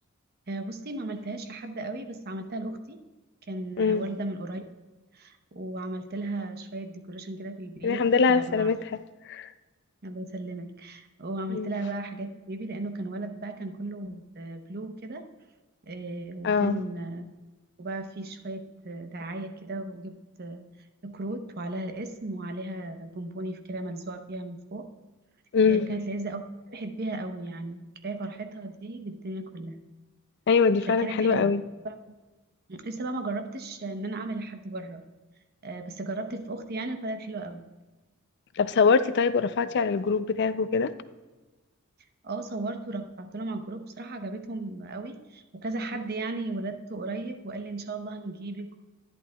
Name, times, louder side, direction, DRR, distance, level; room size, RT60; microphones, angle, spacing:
voice 1, 0.5-3.0 3.5-4.6 5.1-8.7 10.0-15.2 15.9-17.3 17.8-20.7 21.0-24.9 25.7-29.8 30.9-31.5 31.8-31.9 32.7-35.0 35.6-37.7 42.2-48.8, right 2 dB, 50° right, 0.8 m, -35 dB
voice 2, 7.8-8.8 9.3-9.5 11.5-11.7 16.4-16.8 25.5-25.9 30.5-31.6 38.6-40.9, left 5 dB, 55° left, 0.4 m, -23 dB
11.0 x 10.5 x 2.3 m
head